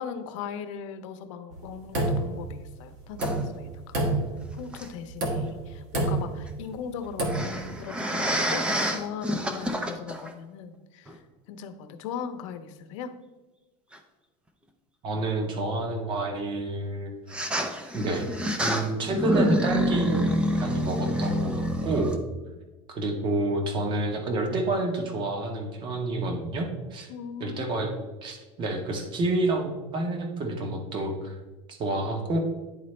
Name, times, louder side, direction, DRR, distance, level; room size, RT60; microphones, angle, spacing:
voice 1, 0.0-4.0 4.5-13.2 27.1-28.0, left 7 dB, 80° left, 8 dB, 0.7 m, -39 dB
sound 1, 1.5-2.7 3.1-3.7 3.9-4.6 5.1-5.7 5.9-6.4 7.1-7.6, right 2 dB, 50° right, 1.3 m, -28 dB
sound 2, 3.2-3.4 4.7-4.9 7.3-10.3 11.1-11.2 13.9-14.0 17.3-22.2, equal, 5° right, 0.4 m, -27 dB
voice 2, 15.0-17.1 17.9-18.3 18.6-22.1 22.9-27.1 27.4-27.9 28.2-31.4 31.7-32.4, right 2 dB, 30° right, 4 dB, 1.0 m, -29 dB
10.0 x 4.0 x 3.2 m, 1.2 s
cardioid pair, 160°, 16 cm